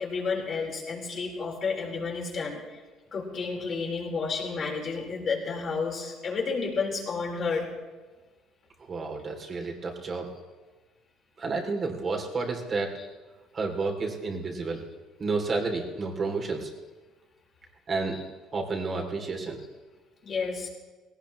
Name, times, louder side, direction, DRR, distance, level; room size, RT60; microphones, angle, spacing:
voice 1, 0.0-2.8 3.1-7.7 13.0-13.1 18.1-18.2 20.2-20.7, left 4 dB, 40° left, -2 dB, 4.4 m, -31 dB
voice 2, 8.9-10.3 11.4-13.0 13.5-14.8 15.2-16.7 17.9-18.2 18.5-19.6, right 3 dB, 35° right, 2 dB, 2.9 m, -30 dB
19.0 x 17.5 x 3.1 m, 1.3 s
cardioid pair, 115°, 0 cm